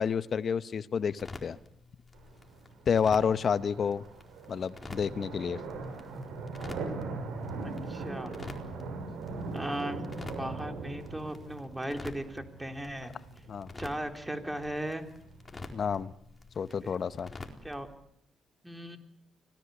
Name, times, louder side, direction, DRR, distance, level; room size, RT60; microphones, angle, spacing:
voice 1, 0.0-1.6 2.9-4.0 4.5-5.6 13.5-13.7 15.7-16.1 16.6-17.3, left 6 dB, 55° left, 1.0 m, -29 dB
sound 1, 1.2-18.0, left 3 dB, 25° left, 4.2 m, -49 dB
sound 2, 2.1-16.1, right 3 dB, 80° right, 6.9 m, -41 dB
voice 2, 7.6-8.3 9.5-13.1 13.8-15.1 16.8-16.9 17.6-17.9 18.6-19.0, right 1 dB, 10° right, 3.8 m, -37 dB
25.0 x 18.5 x 8.4 m
supercardioid pair, 65°, 0 cm